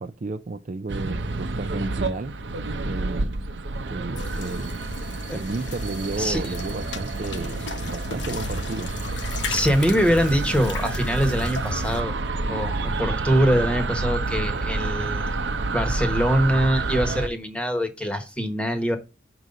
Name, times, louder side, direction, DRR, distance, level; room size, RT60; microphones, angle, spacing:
voice 1, 0.0-2.4 2.8-3.4 3.9-4.8 5.3-8.9, right 3 dB, 45° right, 0.4 m, -32 dB
sound 1, 0.9-17.3, right 3 dB, 90° right, 0.7 m, -29 dB
sound 2, 4.2-12.0, left 4 dB, 85° left, 1.0 m, -36 dB
voice 2, 9.5-12.2 12.5-15.3 15.7-19.0, equal, 5° left, 1.1 m, -23 dB
6.3 x 4.0 x 5.3 m
head